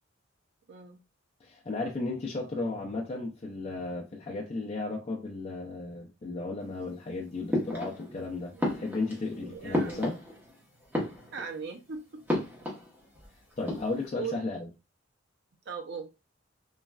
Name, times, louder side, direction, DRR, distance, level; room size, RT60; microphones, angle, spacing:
voice 1, 0.7-1.0 8.5-8.8 9.4-10.1 11.3-12.7 14.1-14.5 15.7-16.1, right 6 dB, 60° right, 0.6 m, -40 dB
voice 2, 1.4-10.2 13.6-14.7, left 3 dB, 30° left, 0.4 m, -34 dB
sound 1, 7.5-8.2 8.6-10.6 10.8-11.7 12.3-13.3 13.5-14.1, left 1 dB, 10° right, 0.9 m, -33 dB
3.1 x 2.3 x 2.2 m
head